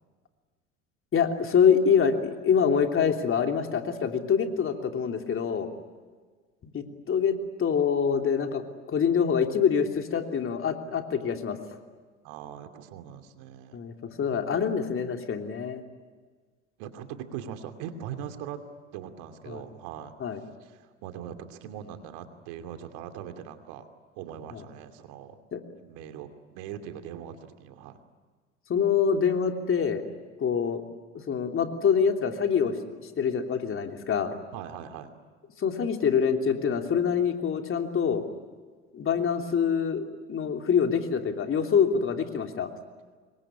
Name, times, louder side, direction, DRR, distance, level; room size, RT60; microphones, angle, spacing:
voice 1, 1.1-5.7 6.6-8.6 8.9-11.6 13.7-15.8 19.5-19.6 20.2-20.4 24.5-24.6 25.5-25.6 28.7-30.0 30.4-30.8 31.3-34.4 35.6-38.2 38.9-42.7, left 7 dB, 35° left, 4 dB, 3.1 m, -25 dB
voice 2, 12.2-13.8 16.8-18.6 18.9-20.1 20.6-23.9 24.1-25.4 25.7-28.0 34.5-35.1, right 9 dB, 65° right, 7 dB, 2.6 m, -41 dB
26.5 x 22.5 x 9.9 m, 1.5 s
hypercardioid pair, 75°, 35 cm